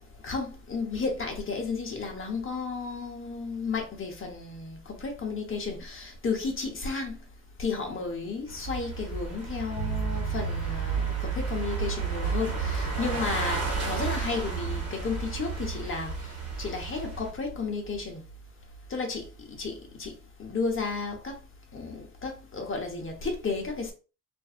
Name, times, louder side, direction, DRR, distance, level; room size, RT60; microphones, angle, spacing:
voice 1, 0.2-7.2 7.6-16.1 16.6-18.2 18.9-19.7 20.0-20.1 20.4-21.3 21.7-23.9, left 4 dB, 35° left, 1.0 m, -33 dB
sound 1, 8.5-17.3, right 3 dB, 40° right, 1.3 m, -33 dB
sound 2, 9.8-19.6, right 10 dB, 80° left, 0.7 m, -36 dB
2.5 x 2.5 x 2.4 m
supercardioid pair, 75°, 38 cm